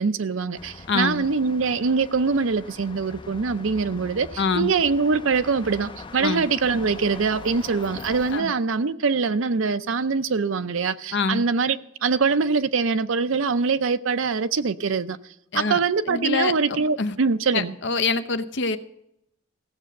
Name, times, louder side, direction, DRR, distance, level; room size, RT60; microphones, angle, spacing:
voice 1, 0.0-15.2 15.5-17.7, right 4 dB, 75° right, 0.6 m, -23 dB
sound 1, 0.5-8.4, left 3 dB, 25° left, 0.5 m, -42 dB
voice 2, 0.9-1.2 4.4-4.7 6.2-6.4 8.3-8.5 11.1-11.4 15.5-15.8 16.1-17.1 17.5-18.8, left 4 dB, 60° left, 0.7 m, -25 dB
16.0 x 7.6 x 6.5 m
head